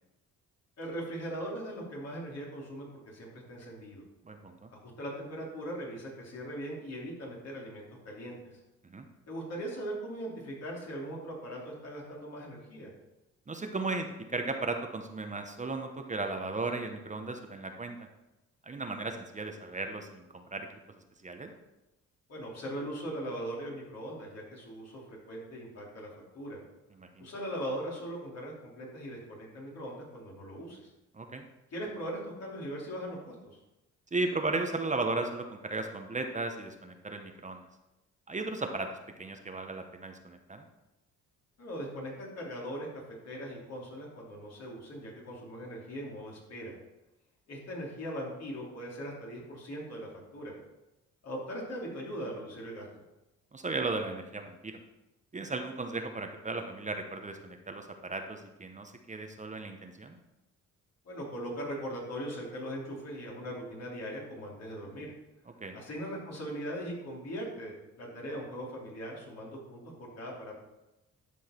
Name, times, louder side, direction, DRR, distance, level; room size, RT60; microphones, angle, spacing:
voice 1, 0.8-4.0 5.0-8.5 9.3-12.9 22.3-26.1 26.3-26.6 27.2-30.9 31.7-33.6 41.6-42.9 43.2-46.8 47.5-50.5 51.2-52.9 61.0-65.1 65.7-70.5, equal, 55° left, -3 dB, 3.0 m, -40 dB
voice 2, 4.2-4.7 8.9-9.1 13.5-18.0 18.7-20.7 21.2-21.5 27.0-27.3 31.1-31.4 34.1-37.6 38.3-38.9 39.2-40.6 53.5-54.7 55.3-60.2 65.6-65.8, right 3 dB, 25° right, 5 dB, 0.9 m, -35 dB
12.0 x 4.7 x 4.4 m, 0.96 s
cardioid pair, 90°, 30 cm